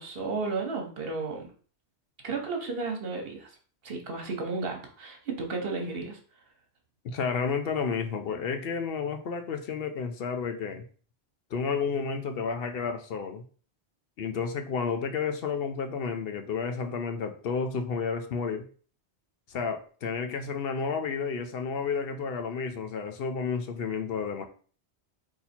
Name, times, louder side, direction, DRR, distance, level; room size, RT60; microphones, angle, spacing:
voice 1, 0.0-1.5 2.2-3.5 3.8-6.2, right 4 dB, 60° right, 3 dB, 1.2 m, -33 dB
voice 2, 7.0-10.8 11.5-13.4 14.2-18.7 19.5-24.5, left 5 dB, 65° left, 6 dB, 0.8 m, -31 dB
4.1 x 2.8 x 4.2 m, 0.42 s
omnidirectional pair, 1.1 m